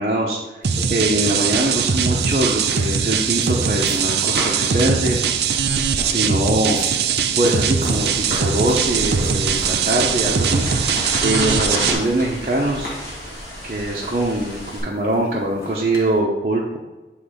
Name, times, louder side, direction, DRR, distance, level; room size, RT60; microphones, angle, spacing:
voice 1, 0.0-5.2 6.1-6.8 7.4-10.6 11.2-12.9 13.6-16.8, right 1 dB, 40° right, -4 dB, 0.8 m, -22 dB
sound 1, 0.6-16.2, left 1 dB, 55° left, 1.4 m, -37 dB
sound 2, 0.6-11.9, right 6 dB, 65° right, 0.5 m, -21 dB
sound 3, 7.9-14.8, equal, 15° left, 2.1 m, -31 dB
8.0 x 3.2 x 5.0 m, 1.2 s
head